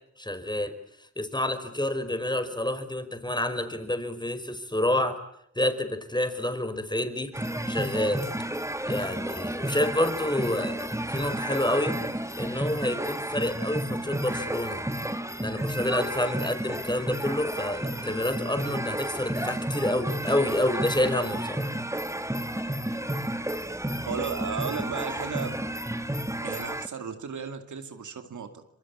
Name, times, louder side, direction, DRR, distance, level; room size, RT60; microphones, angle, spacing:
voice 1, 0.2-0.7 1.2-5.2 5.5-7.3 7.7-8.2 8.9-12.0 12.3-14.8 15.4-21.7, left 1 dB, 15° left, 10 dB, 5.1 m, -28 dB
sound 1, 7.3-26.9, right 1 dB, 10° right, 2.0 m, -32 dB
voice 2, 24.0-25.6 26.4-28.7, right 6 dB, 90° right, 7 dB, 2.5 m, -35 dB
27.0 x 23.5 x 8.7 m, 0.73 s
cardioid pair, 40°, 29 cm